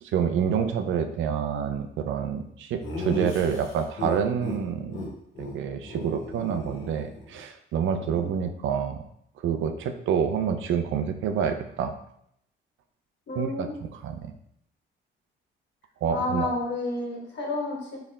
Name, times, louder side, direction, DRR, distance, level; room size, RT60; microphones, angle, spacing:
voice 1, 0.0-5.0 5.4-9.0 9.4-11.9 13.4-14.3 16.0-16.5, right 7 dB, 75° right, 7 dB, 0.5 m, -28 dB
Laughter, 2.8-4.6 4.9-5.1 5.3-5.5 5.8-7.4, left 2 dB, 80° left, 1.5 m, -35 dB
voice 2, 13.3-13.7 16.1-18.0, left 2 dB, 65° left, -2 dB, 1.7 m, -30 dB
4.4 x 3.3 x 3.6 m, 0.73 s
cardioid pair, 90°, 20 cm